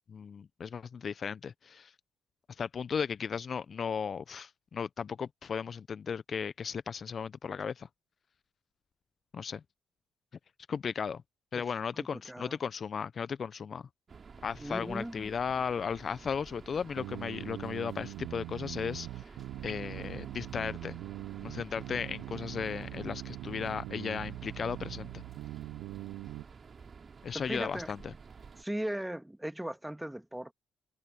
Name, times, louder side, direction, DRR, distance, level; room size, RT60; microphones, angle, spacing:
voice 1, 0.1-1.9 2.6-7.9 9.3-9.6 10.7-11.2 11.5-13.8 14.4-19.1 19.6-21.0 21.4-25.2 27.2-28.1, left 6 dB, 50° left, 1.1 m, -36 dB
voice 2, 12.0-12.6 14.6-15.3 27.3-27.9 28.6-30.5, right 1 dB, 5° right, 2.6 m, -38 dB
sound 1, 14.1-28.6, right 5 dB, 40° right, 3.9 m, -51 dB
sound 2, 17.0-26.4, right 18 dB, 70° right, 1.0 m, -42 dB
hypercardioid pair, 45°, 0 cm